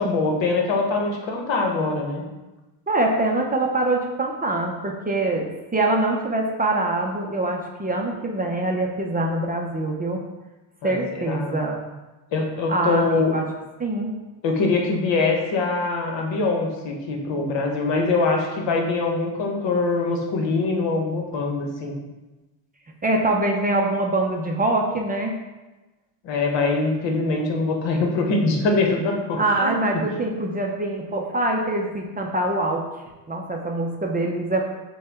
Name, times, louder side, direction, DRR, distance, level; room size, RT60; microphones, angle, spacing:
voice 1, 0.0-2.2 10.8-11.6 12.3-13.3 14.4-22.0 26.2-29.7 29.9-30.0, left 3 dB, 65° left, 2 dB, 1.1 m, -23 dB
voice 2, 2.9-10.2 10.8-11.8 12.7-13.4 13.8-14.1 23.0-25.4 29.4-32.8 33.3-34.6, right 2 dB, 20° right, 0 dB, 0.5 m, -24 dB
6.5 x 2.3 x 3.4 m, 1.1 s
cardioid pair, 95°, 47 cm